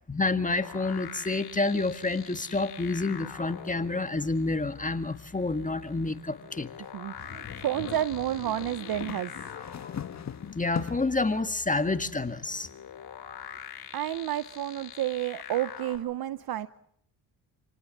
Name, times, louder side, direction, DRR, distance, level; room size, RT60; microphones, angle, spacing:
voice 1, 0.1-6.7 9.8-9.9 10.6-12.7, left 3 dB, 20° left, 9 dB, 1.7 m, -29 dB
sound 1, 0.6-16.0, left 8 dB, 60° left, 5.3 m, -45 dB
voice 2, 6.9-9.3 13.9-16.7, right 12 dB, 55° right, 15 dB, 0.9 m, -30 dB
sound 2, 7.1-11.2, left 8 dB, 40° left, 1.4 m, -40 dB
29.0 x 19.5 x 7.3 m, 0.73 s
cardioid pair, 75°, 42 cm